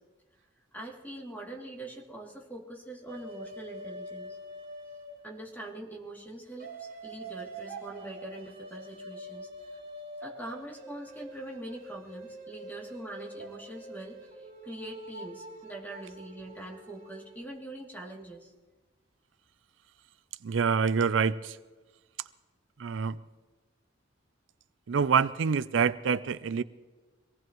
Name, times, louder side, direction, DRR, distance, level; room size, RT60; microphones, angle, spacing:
voice 1, 0.7-4.4 5.2-9.5 10.2-18.5, right 2 dB, 10° left, -3 dB, 2.7 m, -43 dB
sound 1, 3.1-5.6 6.6-17.4, right 1 dB, 50° right, 3.0 m, -45 dB
voice 2, 20.4-21.6 22.8-23.2 24.9-26.6, right 6 dB, 75° right, 15 dB, 0.4 m, -26 dB
24.0 x 18.5 x 3.1 m, 1.3 s
head